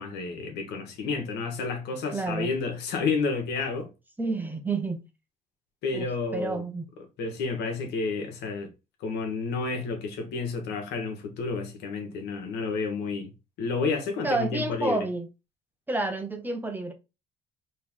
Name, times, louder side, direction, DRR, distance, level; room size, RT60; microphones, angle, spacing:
voice 1, 0.0-3.9 5.8-6.6 7.2-8.7 9.0-15.0, left 4 dB, 80° left, 1.5 m, -30 dB
voice 2, 2.1-2.5 4.2-5.0 5.9-6.9 14.2-15.3 15.9-16.9, right 2 dB, 10° right, 1.0 m, -29 dB
4.5 x 3.3 x 3.6 m
cardioid pair, 110°, 17 cm